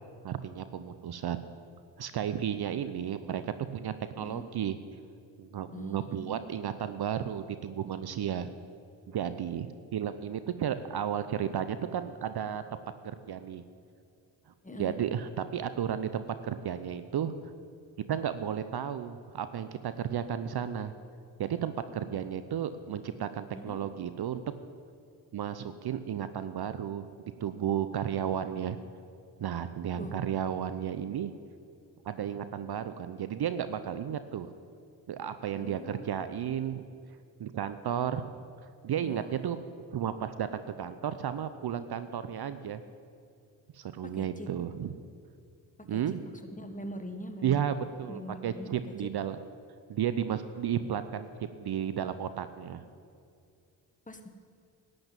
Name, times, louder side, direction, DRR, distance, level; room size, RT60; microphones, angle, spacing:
voice 1, 0.2-1.4 2.0-3.4 3.7-4.7 5.4-8.5 9.1-12.8 13.0-13.6 14.7-17.3 18.1-20.9 21.4-24.4 25.3-27.1 27.4-28.8 29.4-31.3 32.0-34.5 35.1-36.8 37.4-38.2 38.8-39.6 39.9-42.8 43.8-44.9 45.9-46.2 47.4-49.4 49.9-52.8, right 9 dB, 50° right, 11 dB, 0.8 m, -33 dB
voice 2, 5.7-6.4 14.6-14.9 23.5-23.8 30.0-30.1 35.6-36.1 39.0-39.3 44.1-44.5 45.9-46.0 46.6-47.6 48.1-48.7 54.1-54.3, equal, 15° left, 6 dB, 1.5 m, -42 dB
12.0 x 7.9 x 9.1 m, 2.4 s
hypercardioid pair, 50°, 49 cm